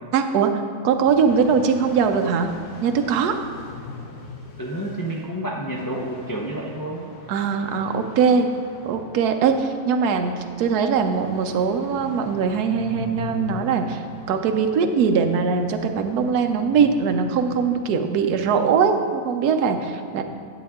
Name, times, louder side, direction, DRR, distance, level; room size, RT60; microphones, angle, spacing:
voice 1, 0.1-0.5 0.8-2.5 2.8-3.3 7.3-8.5 8.9-10.3 10.6-14.0 14.3-20.2, right 6 dB, 80° right, 6 dB, 1.2 m, -21 dB
sound 1, 1.0-17.8, left 3 dB, 65° left, 1.4 m, -41 dB
voice 2, 4.6-7.1, right 1 dB, 25° left, -3 dB, 0.4 m, -29 dB
10.5 x 7.7 x 3.6 m, 2.4 s
omnidirectional pair, 1.7 m